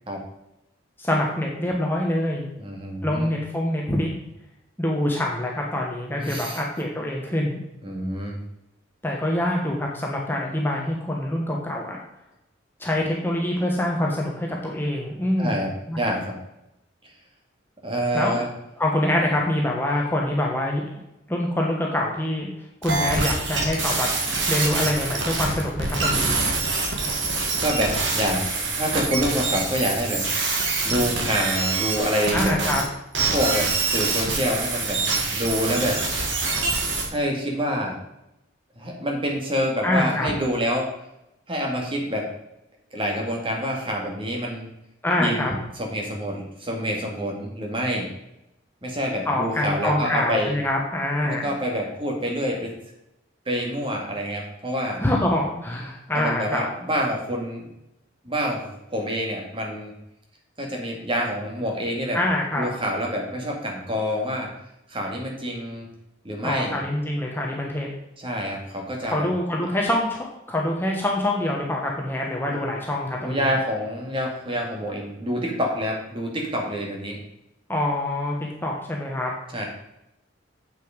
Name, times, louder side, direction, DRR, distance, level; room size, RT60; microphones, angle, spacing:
voice 1, 1.0-2.5 3.0-4.1 4.8-7.6 9.0-12.0 12.8-15.6 15.9-16.0 18.1-18.4 18.8-21.0 21.3-24.1 24.5-26.4 32.3-32.8 39.8-40.3 45.0-45.6 49.3-51.5 55.0-56.7 62.1-62.7 66.4-67.9 69.0-73.4 77.7-79.3, left 1 dB, 10° left, -2 dB, 1.1 m, -25 dB
voice 2, 2.6-3.3 6.2-6.6 7.8-8.4 15.4-16.3 17.8-18.5 27.6-30.2 30.8-32.5 33.3-35.0 35.3-36.0 37.1-38.0 38.8-40.9 41.5-42.3 42.9-44.7 45.2-48.1 48.8-50.6 51.2-52.7 53.5-55.0 56.1-57.7 58.2-59.9 60.6-62.2 62.6-64.5 64.9-65.9 66.2-66.8 68.2-69.3 72.5-72.6 73.2-77.2 79.5-79.7, equal, 25° right, 0 dB, 2.1 m, -27 dB
sound 1, 22.8-32.8 33.1-37.0, right 3 dB, 70° right, 2.1 m, -25 dB
8.1 x 6.3 x 5.1 m, 0.86 s
head